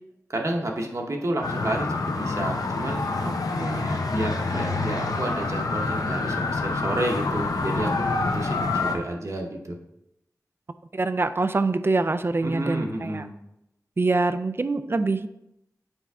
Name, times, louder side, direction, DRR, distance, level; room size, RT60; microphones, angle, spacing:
voice 1, 0.3-3.0 4.1-9.8 12.4-13.3, right 1 dB, 55° right, 1 dB, 0.9 m, -30 dB
sound 1, 1.4-8.9, left 3 dB, 90° left, 0.6 m, -27 dB
voice 2, 3.2-4.0 10.9-13.2 14.0-15.3, right 3 dB, 40° right, 11 dB, 0.4 m, -25 dB
6.9 x 4.5 x 3.5 m, 0.84 s
wide cardioid pair, 80°, 6 cm